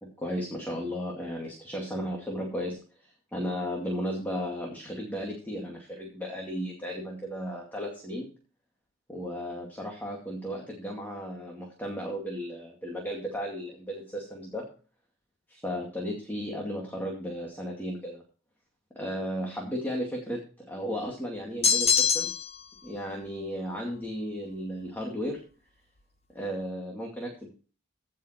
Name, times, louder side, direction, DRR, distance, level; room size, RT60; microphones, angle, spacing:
voice 1, 0.0-8.3 9.1-14.7 15.5-18.2 19.0-22.3 22.8-25.4 26.3-27.5, equal, 10° left, -1 dB, 2.3 m, -35 dB
sound 1, 21.6-22.6, left 6 dB, 35° left, 1.3 m, -23 dB
16.0 x 5.7 x 4.4 m, 0.38 s
head